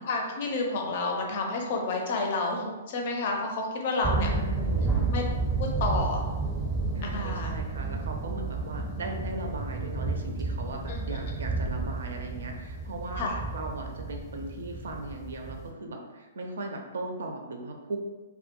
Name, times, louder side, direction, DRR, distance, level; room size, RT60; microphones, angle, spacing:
voice 1, 0.0-4.3 5.1-5.2 5.6-6.2 7.0-7.5 10.9-11.2 13.1-13.4, left 3 dB, 45° left, 1 dB, 0.5 m, -30 dB
sound 1, 4.0-15.7, right 3 dB, 10° right, 0.6 m, -31 dB
voice 2, 4.1-5.0 6.9-13.2 13.5-18.0, right 2 dB, 60° right, 2 dB, 0.4 m, -38 dB
2.1 x 2.1 x 2.8 m, 1.2 s
figure-of-eight pair, 115°, 0 cm